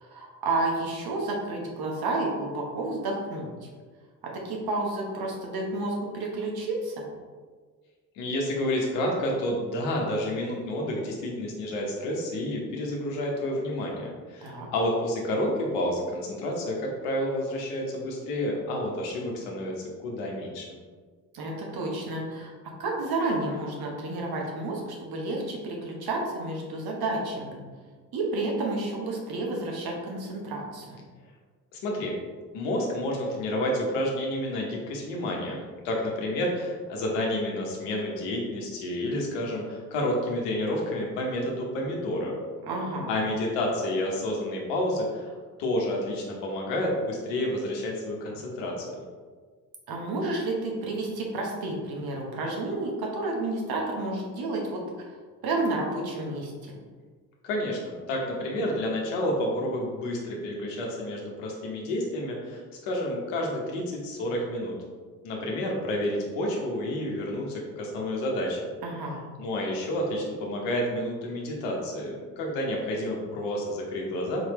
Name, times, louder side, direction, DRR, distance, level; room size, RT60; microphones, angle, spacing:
voice 1, 0.0-3.5 4.3-7.0 14.4-14.7 21.3-27.6 28.1-31.0 42.6-43.1 49.9-55.1 55.4-56.7 68.8-69.2, right 2 dB, 55° right, -1 dB, 1.2 m, -31 dB
voice 2, 8.2-20.7 31.7-32.1 32.5-42.4 43.1-45.3 45.6-49.0 57.4-64.8 65.2-68.6 69.4-74.5, left 1 dB, 80° left, -1 dB, 1.0 m, -30 dB
4.2 x 3.2 x 3.1 m, 1.5 s
hypercardioid pair, 55°, 44 cm